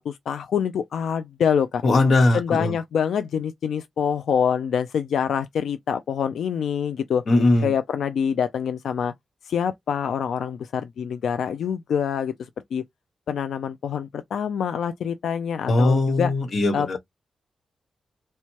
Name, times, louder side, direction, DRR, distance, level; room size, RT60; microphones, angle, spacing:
voice 1, 0.0-1.8 2.3-7.2 7.6-9.1 9.4-12.8 13.3-16.3 16.7-17.0, left 7 dB, 80° left, 0.3 m, -25 dB
voice 2, 1.8-2.7 7.3-7.7 15.7-17.0, left 2 dB, 50° left, 1.0 m, -19 dB
4.4 x 2.1 x 2.8 m
wide cardioid pair, 150°, 0 cm